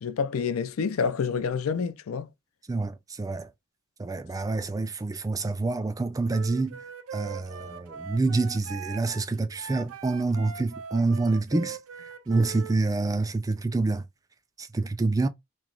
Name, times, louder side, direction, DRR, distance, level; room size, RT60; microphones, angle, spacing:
voice 1, 0.0-2.3, left 6 dB, 75° left, 0.4 m, -28 dB
voice 2, 2.7-3.5 4.0-6.8 7.1-11.8 12.3-14.0 14.6-15.3, right 3 dB, 15° right, 0.3 m, -27 dB
Wind instrument woodwind instrument, 6.3-12.8, right 8 dB, 80° right, 0.5 m, -41 dB
3.0 x 2.9 x 3.7 m
head